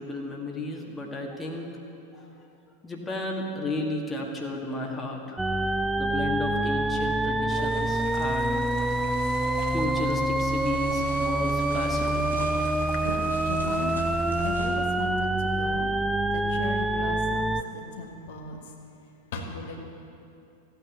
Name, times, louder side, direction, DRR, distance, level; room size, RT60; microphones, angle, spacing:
voice 1, 0.0-1.7 2.1-2.5 2.8-5.4 5.9-8.6 9.7-12.5, left 2 dB, 15° left, -1 dB, 1.9 m, -33 dB
sound 1, 5.4-17.6, right 1 dB, 5° right, 0.5 m, -26 dB
sound 2, 7.5-14.6, left 4 dB, 40° left, 2.8 m, -44 dB
sound 3, 10.5-14.8, right 3 dB, 75° right, 1.8 m, -39 dB
voice 2, 13.4-14.0 14.4-15.9 16.3-18.7 19.3-19.8, left 4 dB, 55° left, 1 dB, 1.8 m, -38 dB
15.5 x 9.2 x 8.7 m, 2.6 s
figure-of-eight pair, 90°, 0 cm